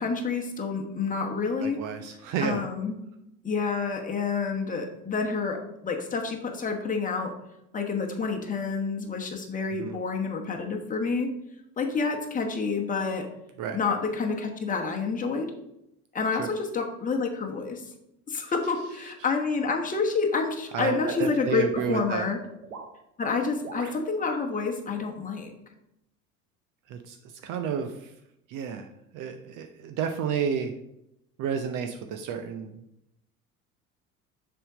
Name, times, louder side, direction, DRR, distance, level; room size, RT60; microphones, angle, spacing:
voice 1, 0.0-1.8 2.4-2.9 3.4-5.6 5.8-7.3 7.7-11.3 11.8-13.3 13.7-15.5 16.1-17.8 18.3-22.4 23.2-25.5, left 4 dB, 20° left, 1 dB, 1.1 m, -28 dB
voice 2, 1.6-2.6 9.7-10.0 13.6-13.8 16.4-16.5 20.7-22.3 26.9-27.2 27.4-28.1 28.5-28.9 29.1-30.7 31.4-32.7, right 7 dB, 45° right, 6 dB, 0.7 m, -31 dB
sound 1, 20.8-21.9 22.6-22.9 23.6-24.0, right 4 dB, 75° right, 0.9 m, -40 dB
6.7 x 3.7 x 4.8 m, 0.83 s
figure-of-eight pair, 65°, 44 cm